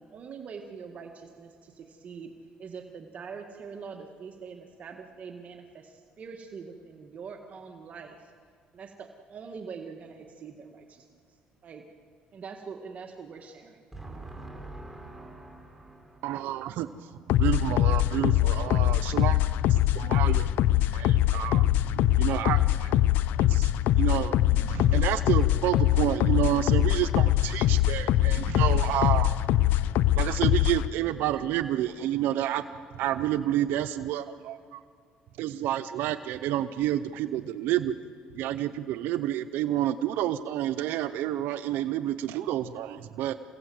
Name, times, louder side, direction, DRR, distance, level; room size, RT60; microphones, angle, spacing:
voice 1, 0.0-2.3 2.6-8.3 8.7-11.1 11.6-11.8 12.3-14.3, right 5 dB, 45° right, 4 dB, 1.6 m, -43 dB
voice 2, 13.9-16.3, right 2 dB, ahead, -1 dB, 5.1 m, -44 dB
voice 3, 16.2-16.9 17.4-19.4 19.7-20.5 20.9-21.6 21.9-22.9 23.4-29.4 30.2-32.6 33.0-34.8 35.4-38.0 38.3-43.3, right 12 dB, 85° right, 11 dB, 0.7 m, -29 dB
sound 1, 17.3-30.9, left 13 dB, 80° left, 0.5 m, -23 dB
28.5 x 17.0 x 7.8 m, 2.1 s
cardioid pair, 105°, 3 cm